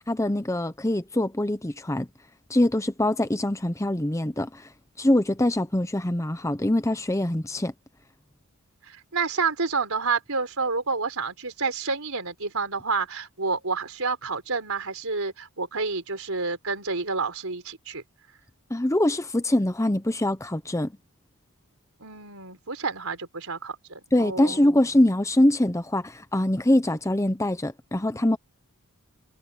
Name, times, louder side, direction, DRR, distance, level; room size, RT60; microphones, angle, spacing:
voice 1, 0.1-2.1 2.5-4.7 5.0-7.7 18.7-20.9 24.1-28.4, left 1 dB, 15° left, 0.8 m, -23 dB
voice 2, 8.9-18.0 22.0-24.6, right 4 dB, 70° right, 4.7 m, -29 dB
head